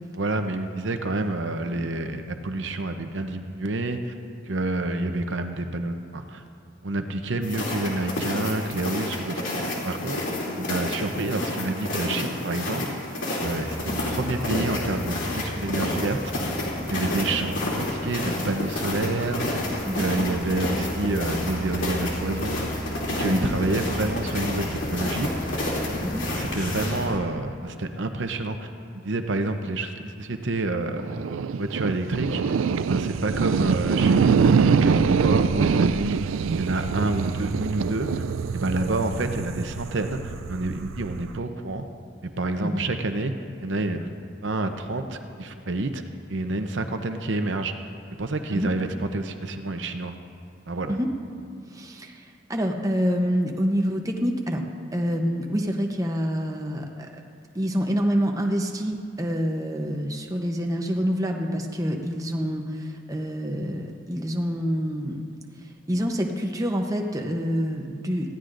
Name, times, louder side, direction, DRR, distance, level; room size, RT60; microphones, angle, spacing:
voice 1, 0.1-4.1 4.5-6.4 6.8-9.4 9.8-10.2 10.6-12.9 13.4-16.3 16.9-19.6 20.0-22.7 23.2-25.4 26.4-28.7 28.9-31.0 31.5-36.2 36.6-38.2 38.5-41.8 42.2-43.3 43.6-44.1 44.4-46.0 46.3-47.7 48.2-50.1 50.7-50.9, right 2 dB, 70° right, 7 dB, 0.7 m, -28 dB
sound 1, 7.4-27.1, left 1 dB, 80° left, 2.8 m, -30 dB
sound 2, 13.4-27.2, left 1 dB, 45° left, 1.6 m, -35 dB
sound 3, 31.0-41.4, right 5 dB, 90° right, 0.4 m, -24 dB
voice 2, 51.7-54.6 54.9-57.2 57.5-65.2 65.9-68.3, equal, 15° right, 2 dB, 0.8 m, -27 dB
19.5 x 15.0 x 2.6 m, 2.4 s
head